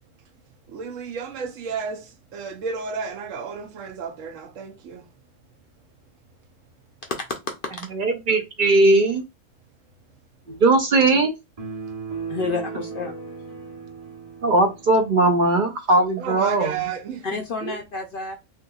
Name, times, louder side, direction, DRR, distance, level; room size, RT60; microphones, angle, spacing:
voice 1, 0.7-5.1 16.2-17.8, right 6 dB, 80° right, 1.1 m, -32 dB
voice 2, 7.9-9.2 10.5-11.3 14.4-16.7, right 2 dB, 55° right, 0.6 m, -19 dB
sound 1, 11.6-15.1, right 5 dB, 30° right, 0.9 m, -36 dB
voice 3, 12.3-13.1 17.2-18.3, left 4 dB, 60° left, 0.6 m, -29 dB
3.5 x 2.9 x 2.3 m
omnidirectional pair, 1.3 m